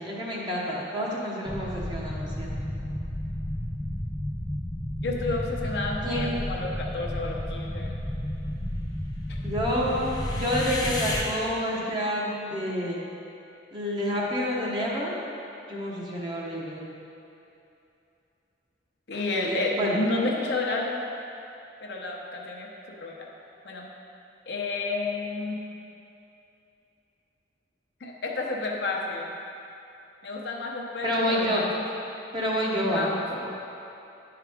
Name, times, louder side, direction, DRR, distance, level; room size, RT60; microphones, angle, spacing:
voice 1, 0.0-2.5 6.0-6.3 9.4-13.0 13.7-15.1 15.7-16.9 19.5-20.0 31.0-31.6 32.3-33.1 33.4-33.5, equal, 25° right, -5 dB, 1.0 m, -28 dB
sound 1, 1.5-11.2, left 1 dB, 20° left, 0.7 m, -32 dB
voice 2, 5.0-8.0 19.1-21.0 21.8-22.7 23.0-23.3 23.6-23.9 24.5-25.6 28.0-29.3 30.2-31.8 32.9-33.5, left 2 dB, 60° left, -1 dB, 0.8 m, -31 dB
10.5 x 4.8 x 3.5 m, 2.8 s
head